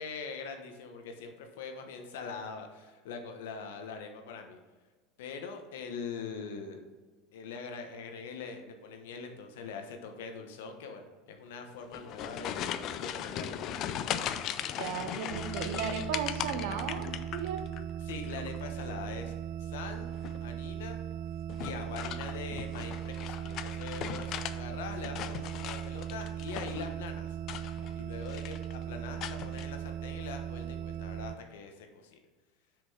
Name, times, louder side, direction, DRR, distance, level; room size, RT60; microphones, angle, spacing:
voice 1, 0.0-4.6 5.2-6.8 7.3-12.6 13.0-13.6 18.0-19.3 19.6-20.1 20.4-21.0 21.6-27.4 28.0-32.2, left 5 dB, 80° left, 5 dB, 1.1 m, -43 dB
sound 1, 11.8-17.8 18.1-18.7 20.1-20.5 21.5-24.6 24.9-26.9 27.4-28.0 28.3-28.7 29.2-29.7, left 10 dB, 50° left, 0.5 m, -38 dB
voice 2, 14.8-17.6, right 6 dB, 75° right, 7 dB, 0.9 m, -35 dB
sound 2, 15.3-31.4, right 9 dB, 55° right, 0.3 m, -38 dB
6.4 x 5.1 x 4.9 m, 1.3 s
supercardioid pair, 105°, 0 cm